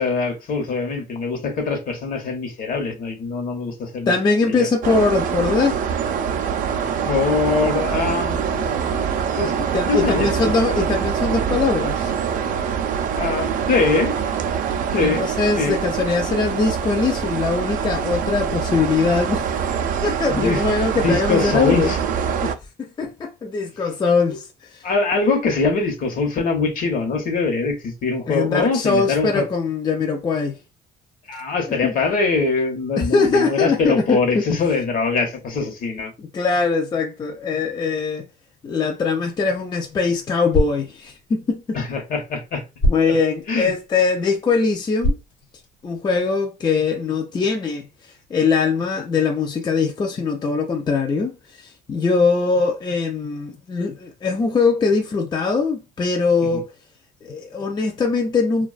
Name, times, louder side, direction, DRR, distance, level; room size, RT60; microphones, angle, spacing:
voice 1, 0.0-4.7 7.1-9.5 9.9-10.5 13.1-14.1 14.9-15.2 15.6-15.8 20.3-20.7 21.0-22.0 24.3-24.4 24.8-29.4 31.3-36.1 41.7-42.6 43.5-43.7 56.5-56.6, left 4 dB, 60° left, 0.9 m, -23 dB
voice 2, 4.1-5.8 9.7-12.1 15.0-19.5 20.0-21.9 22.4-24.8 28.3-30.6 31.8-31.9 33.0-34.6 36.2-38.2 38.6-41.8 42.9-45.2 45.8-47.9 48.3-56.7 57.2-58.7, left 4 dB, 25° left, 0.4 m, -21 dB
sound 1, 4.8-22.6, right 7 dB, 50° right, 0.4 m, -24 dB
sound 2, 39.3-46.2, equal, 85° left, 0.9 m, -29 dB
2.4 x 2.2 x 2.3 m
cardioid pair, 110°, 17 cm